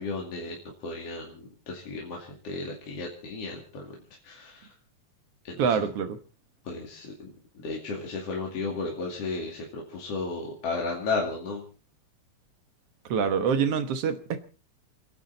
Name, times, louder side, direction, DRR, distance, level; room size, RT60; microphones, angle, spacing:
voice 1, 0.0-3.9 4.2-4.7 5.4-5.8 6.6-7.3 7.5-11.6, left 3 dB, 55° left, -1 dB, 3.4 m, -34 dB
voice 2, 5.6-6.2 13.1-14.4, right 6 dB, 60° right, 9 dB, 2.0 m, -25 dB
29.0 x 10.5 x 4.0 m, 0.36 s
omnidirectional pair, 3.4 m